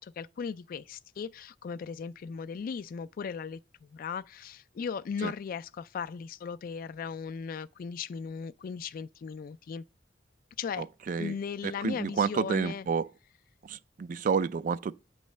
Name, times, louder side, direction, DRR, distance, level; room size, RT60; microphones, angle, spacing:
voice 1, 0.0-3.6 3.9-9.8 10.6-10.9 11.2-12.8, left 6 dB, 50° left, 0.3 m, -37 dB
voice 2, 10.8-11.4 11.6-13.1 13.6-14.9, right 6 dB, 45° right, 0.3 m, -30 dB
9.3 x 3.1 x 6.5 m
head